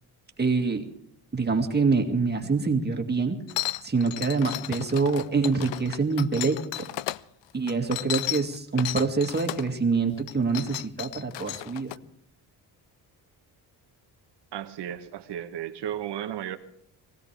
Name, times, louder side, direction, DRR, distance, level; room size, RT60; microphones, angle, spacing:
voice 1, 0.4-0.8 1.3-3.4 3.8-6.6 7.5-12.0, right 4 dB, 25° right, 4 dB, 2.1 m, -25 dB
sound 1, 3.5-7.2 7.7-9.7 10.2-12.0, left 17 dB, 90° left, 0.6 m, -34 dB
voice 2, 14.5-16.6, right 10 dB, 70° right, 8 dB, 1.2 m, -34 dB
21.5 x 16.5 x 3.4 m, 0.72 s
cardioid pair, 105°, 43 cm